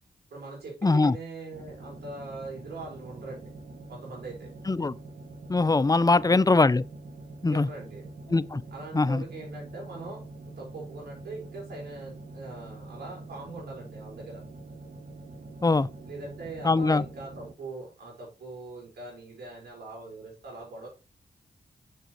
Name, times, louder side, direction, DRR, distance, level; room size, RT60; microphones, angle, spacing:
voice 1, 0.3-3.5 3.9-4.5 6.0-6.5 7.5-8.1 8.7-14.4 16.0-20.9, right 3 dB, 85° right, 4.4 m, -42 dB
voice 2, 0.8-1.1 4.7-4.9 5.5-6.8 7.4-7.7 8.3-8.6 8.9-9.2 15.6-15.9 16.6-17.0, left 3 dB, 20° left, 0.5 m, -22 dB
sound 1, 1.5-17.5, right 2 dB, 55° right, 1.6 m, -45 dB
6.6 x 6.2 x 4.4 m
cardioid pair, 45°, 16 cm